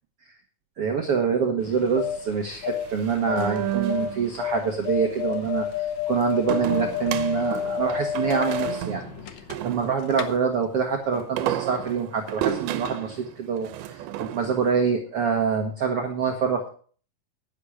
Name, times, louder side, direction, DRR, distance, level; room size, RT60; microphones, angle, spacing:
voice 1, 0.8-9.1 9.6-16.7, right 6 dB, 60° right, 2 dB, 1.5 m, -26 dB
sound 1, 1.6-9.8 10.1-10.3, left 10 dB, 85° left, 1.5 m, -30 dB
sound 2, 2.5-4.5 6.5-10.3 11.1-14.7, right 11 dB, 85° right, 2.7 m, -32 dB
10.5 x 10.0 x 5.0 m, 0.43 s
omnidirectional pair, 4.4 m